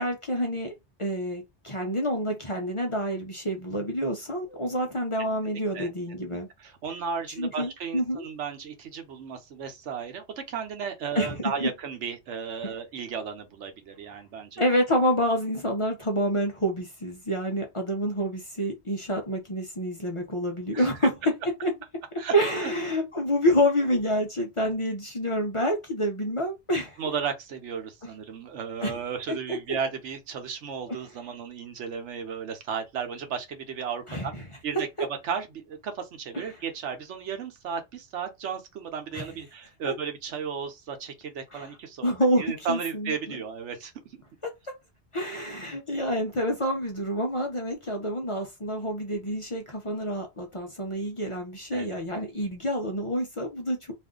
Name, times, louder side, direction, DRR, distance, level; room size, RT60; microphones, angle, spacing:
voice 1, 0.0-6.5 7.4-8.2 11.1-11.7 12.6-12.7 14.6-21.1 21.6-21.7 22.3-27.0 28.8-28.9 29.5-29.6 30.9-31.0 34.1-34.4 39.1-39.3 41.5-41.7 42.0-43.4 44.4-44.5 45.1-53.9, equal, 35° left, 0.6 m, -28 dB
voice 2, 5.5-5.9 6.6-14.6 20.7-20.9 22.2-22.3 22.6-22.7 27.0-34.3 34.6-34.9 35.2-42.1 42.4-44.2 51.7-52.0, right 6 dB, 85° right, 1.1 m, -34 dB
2.6 x 2.5 x 3.6 m
omnidirectional pair, 1.2 m